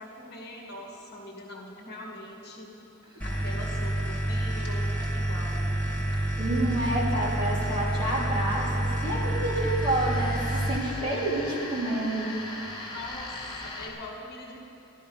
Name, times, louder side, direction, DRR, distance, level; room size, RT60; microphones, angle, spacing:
voice 1, 0.0-2.7 3.2-5.6 11.0-11.2 12.9-14.6, left 1 dB, 50° left, -2 dB, 1.9 m, -42 dB
sound 1, 3.2-10.8, right 1 dB, 5° left, 1.5 m, -28 dB
sound 2, 4.6-13.9, left 2 dB, 25° left, 2.8 m, -42 dB
voice 2, 6.4-12.3, right 1 dB, 25° right, -7 dB, 3.1 m, -29 dB
14.0 x 12.5 x 5.6 m, 2.8 s
head